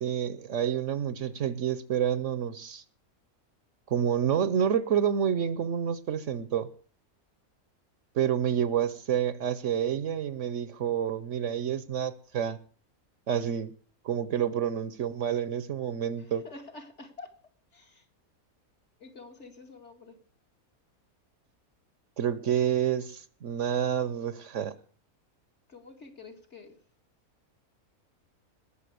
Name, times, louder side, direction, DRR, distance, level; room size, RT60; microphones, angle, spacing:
voice 1, 0.0-2.8 3.9-6.7 8.1-12.6 13.3-13.7 14.0-16.4 22.2-24.7, right 9 dB, 60° right, 1.1 m, -28 dB
voice 2, 16.2-17.3 17.7-18.1 19.0-20.2 25.7-26.8, left 3 dB, 50° left, 2.5 m, -48 dB
20.0 x 7.0 x 6.8 m
omnidirectional pair, 1.5 m